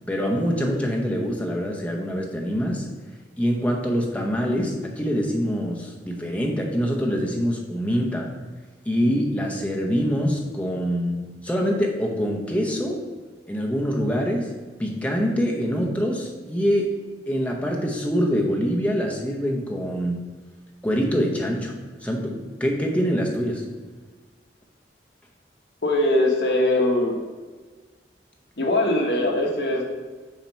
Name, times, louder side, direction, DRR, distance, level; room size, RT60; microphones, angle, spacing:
voice 1, 0.1-2.9 3.4-8.3 8.9-13.0 13.5-14.5 14.8-17.0 17.3-20.3 20.8-21.7 22.0-23.6, equal, 10° left, 0 dB, 0.8 m, -24 dB
voice 2, 25.8-27.1 28.6-29.8, left 1 dB, 65° left, 0 dB, 1.1 m, -21 dB
7.2 x 2.9 x 5.5 m, 1.4 s
head